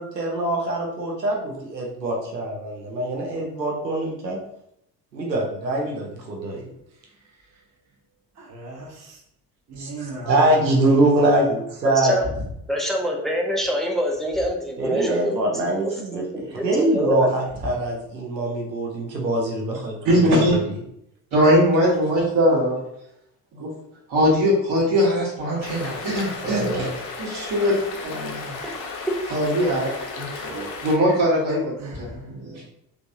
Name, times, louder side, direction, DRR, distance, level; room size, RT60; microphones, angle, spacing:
voice 1, 0.0-4.4 5.1-6.6 9.8-12.1 14.8-20.8 26.4-26.9, right 1 dB, 90° right, -1 dB, 0.7 m, -24 dB
voice 2, 6.9-7.6 8.3-9.2 9.7-11.4 12.2-12.4 17.6-17.7 30.3-30.8 31.8-32.3, right 1 dB, 35° right, -1 dB, 0.9 m, -35 dB
voice 3, 11.8-12.3 12.7-15.4 16.1-17.3, equal, ahead, 0 dB, 0.3 m, -25 dB
voice 4, 20.0-20.6 21.3-22.8 23.5-23.7 24.1-26.9 27.2-28.4 29.3-29.9 30.1-30.3 30.8-31.7 32.0-32.6, equal, 55° right, -5 dB, 1.2 m, -21 dB
sound 1, 25.6-31.0, left 4 dB, 40° left, 0.7 m, -34 dB
3.1 x 2.6 x 2.6 m, 0.75 s
figure-of-eight pair, 45°, 49 cm